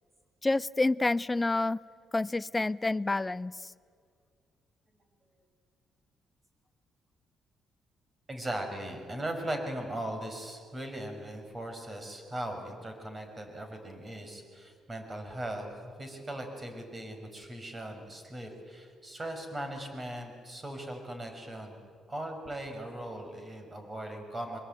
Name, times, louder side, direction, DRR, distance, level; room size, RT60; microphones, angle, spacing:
voice 1, 0.4-1.8 2.1-3.5, left 2 dB, 20° left, 18 dB, 0.6 m, -28 dB
voice 2, 8.3-21.8 22.1-24.6, right 1 dB, 25° right, 5 dB, 5.9 m, -39 dB
24.0 x 21.5 x 9.2 m, 2.1 s
cardioid pair, 90°, 0 cm